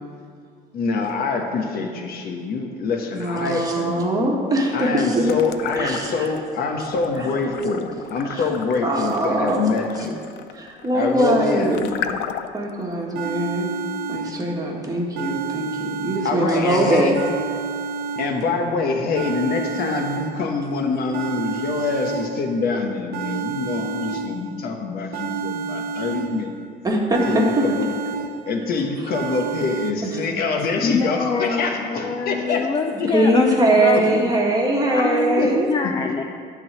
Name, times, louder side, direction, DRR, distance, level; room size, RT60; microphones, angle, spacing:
voice 1, 0.7-4.1 4.7-10.2 10.9-11.8 16.2-17.1 18.2-26.5 27.0-27.9 28.5-32.7 33.0-33.1 33.9-34.0 35.4-35.5 35.8-35.9, left 4 dB, 65° left, 3 dB, 1.2 m, -25 dB
voice 2, 3.1-5.3 5.8-6.3 7.2-7.3 8.2-8.5 8.8-9.6 10.5-11.9 12.5-13.7 14.1-17.2 26.8-27.6 30.0-30.1 33.1-35.7, right 1 dB, 20° right, -1 dB, 1.7 m, -21 dB
sound 1, 5.2-6.4 6.8-12.7, left 9 dB, 85° left, 0.5 m, -34 dB
sound 2, 12.7-12.8 13.2-14.7 15.2-16.7 17.2-18.7 19.2-20.7 21.1-22.7 23.1-24.7 25.1-26.7 27.1-28.7 29.1-29.9, right 6 dB, 70° right, 0.6 m, -30 dB
voice 3, 30.8-34.3 34.9-36.2, left 5 dB, 25° left, 5 dB, 0.5 m, -25 dB
12.0 x 4.0 x 7.6 m, 2.2 s
cardioid pair, 110°, 17 cm